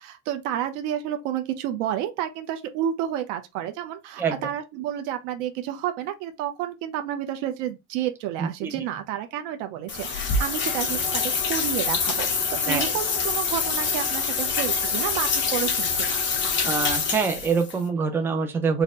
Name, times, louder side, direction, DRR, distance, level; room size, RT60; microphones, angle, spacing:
voice 1, 0.0-16.2, right 11 dB, 85° right, 0.7 m, -30 dB
voice 2, 8.4-8.7 12.7-12.9 16.6-18.8, right 5 dB, 5° right, 0.3 m, -25 dB
sound 1, 9.9-17.7, left 5 dB, 30° left, 1.0 m, -25 dB
4.1 x 2.1 x 3.6 m
cardioid pair, 155°, 37 cm